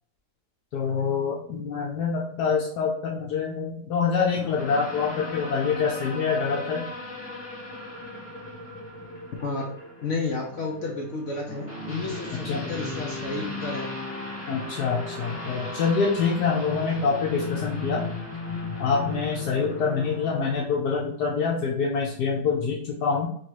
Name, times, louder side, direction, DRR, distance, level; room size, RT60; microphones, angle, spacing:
voice 1, 0.7-6.8 12.4-12.7 14.5-18.0 18.8-23.3, left 5 dB, 85° left, -3 dB, 1.2 m, -26 dB
sound 1, 4.3-20.7, left 2 dB, 10° left, 1.1 m, -36 dB
voice 2, 10.0-13.9, left 3 dB, 60° left, -1 dB, 0.9 m, -31 dB
3.0 x 3.0 x 4.5 m, 0.63 s
omnidirectional pair, 1.7 m